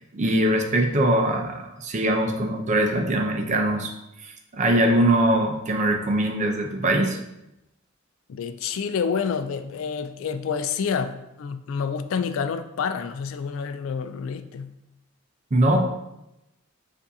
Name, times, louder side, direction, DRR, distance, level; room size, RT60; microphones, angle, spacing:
voice 1, 0.0-3.9 4.2-7.2 15.5-15.9, right 1 dB, 35° right, 3 dB, 0.5 m, -22 dB
voice 2, 8.3-14.7, left 6 dB, 65° left, 10 dB, 0.3 m, -28 dB
6.9 x 2.6 x 2.7 m, 0.90 s
head